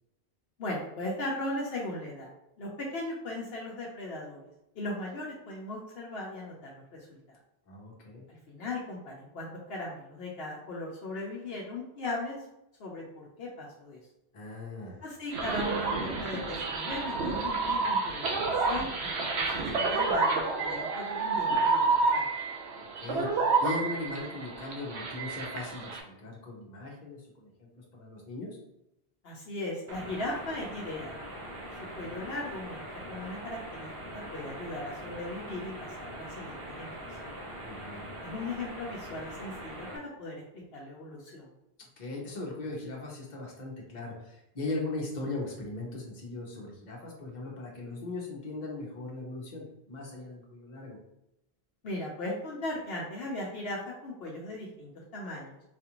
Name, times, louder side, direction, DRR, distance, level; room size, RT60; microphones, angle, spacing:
voice 1, 0.6-2.3 2.6-4.4 4.8-7.2 8.3-12.4 12.8-14.0 15.0-22.2 29.2-31.2 32.0-32.8 33.1-35.7 36.0-37.4 38.2-41.5 51.8-55.6, left 2 dB, 70° left, -3 dB, 0.9 m, -38 dB
voice 2, 7.7-8.2 14.3-15.0 23.0-28.6 37.6-38.0 42.0-51.0, left 2 dB, 45° left, -2 dB, 1.0 m, -39 dB
sound 1, 15.3-26.0, right 3 dB, 90° right, 1.0 m, -29 dB
sound 2, 29.9-40.0, right 1 dB, 40° right, 0.6 m, -42 dB
4.1 x 2.5 x 2.9 m, 0.87 s
omnidirectional pair, 1.1 m